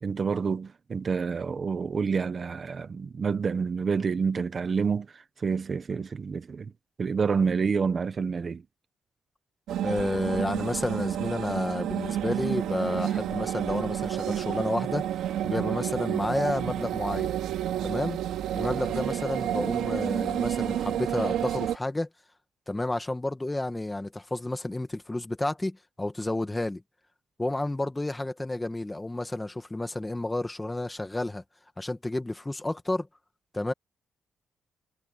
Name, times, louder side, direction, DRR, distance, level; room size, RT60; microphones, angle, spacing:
voice 1, 0.0-6.7 7.0-8.6, right 5 dB, 30° right, 1.1 m, -28 dB
sound 1, 9.7-21.8, right 11 dB, 90° right, 2.2 m, -30 dB
voice 2, 9.8-15.1 15.4-17.3 17.8-18.2 18.5-22.1 22.7-26.8 27.4-31.4 31.8-33.1 33.5-33.7, left 2 dB, 10° left, 1.8 m, -31 dB
cardioid pair, 160°, 0 cm